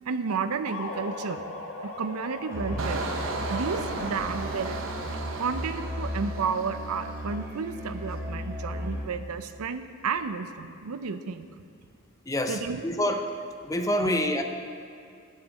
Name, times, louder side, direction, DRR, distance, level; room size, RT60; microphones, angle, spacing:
voice 1, 0.0-3.1 3.5-4.8 5.4-11.5 12.5-12.8 14.0-14.1, right 5 dB, 85° right, 10 dB, 0.5 m, -32 dB
sound 1, 0.7-4.5, left 2 dB, 70° left, 1.3 m, -39 dB
Musical instrument, 2.5-9.3, equal, 15° right, 1.8 m, -36 dB
Engine, 2.8-7.4 7.8-8.1, right 3 dB, 60° right, 0.8 m, -35 dB
voice 2, 12.2-13.3 13.6-14.4, left 1 dB, 15° left, 5 dB, 0.5 m, -27 dB
17.0 x 6.6 x 4.1 m, 2.3 s
head